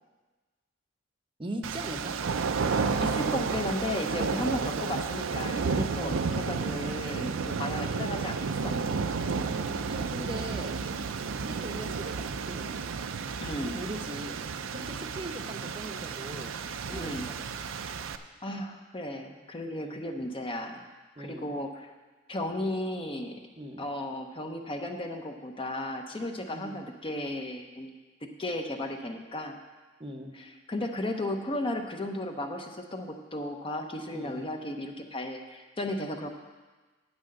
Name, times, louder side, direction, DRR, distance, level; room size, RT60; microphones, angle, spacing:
voice 1, 1.4-2.2 4.3-4.5 6.0-6.3 7.7-8.0 9.9-10.8 11.4-12.9 13.6-14.4 14.7-16.6 16.9-17.5 19.7-20.0 21.2-21.5 23.6-23.8 26.5-26.7 30.0-30.3 34.1-34.4, right 1 dB, 25° right, 4 dB, 0.8 m, -40 dB
sound 1, 1.6-18.2, right 5 dB, 75° right, 0.5 m, -32 dB
voice 2, 3.0-8.8 9.5-9.8 13.4-13.7 16.9-17.3 18.4-20.8 21.2-21.9 22.3-23.4 23.8-27.9 28.2-29.6 30.7-36.3, left 1 dB, 25° left, 4 dB, 0.8 m, -35 dB
9.3 x 6.2 x 7.6 m, 1.3 s
head